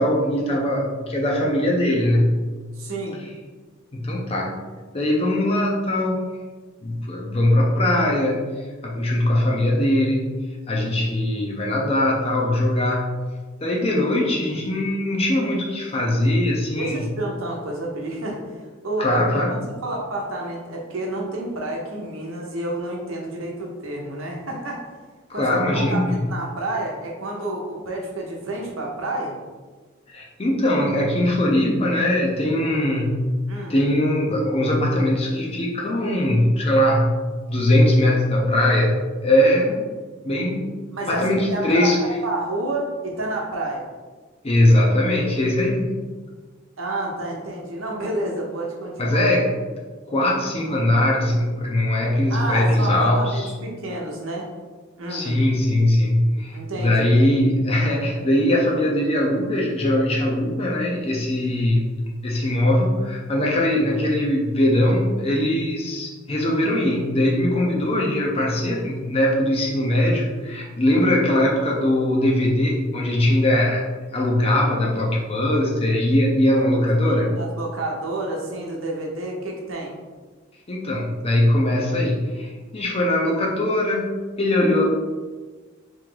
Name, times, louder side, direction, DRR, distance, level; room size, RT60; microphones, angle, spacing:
voice 1, 0.0-2.4 3.9-4.6 4.9-6.3 6.8-10.4 10.7-13.3 13.6-17.0 19.0-19.6 25.3-26.1 30.1-33.3 33.7-37.2 37.5-39.9 40.2-42.0 44.4-46.0 49.0-49.5 50.1-53.5 55.1-61.8 62.2-73.9 74.1-77.4 80.7-84.8, left 1 dB, 30° left, -2 dB, 0.5 m, -21 dB
voice 2, 2.8-3.2 16.8-18.4 18.8-19.2 19.5-24.9 25.3-29.4 33.5-33.8 40.9-43.9 46.8-49.3 52.3-54.5 55.0-55.4 56.5-57.1 76.5-76.6 77.0-80.0, right 2 dB, 90° right, -1 dB, 0.9 m, -29 dB
3.4 x 3.1 x 3.8 m, 1.4 s
head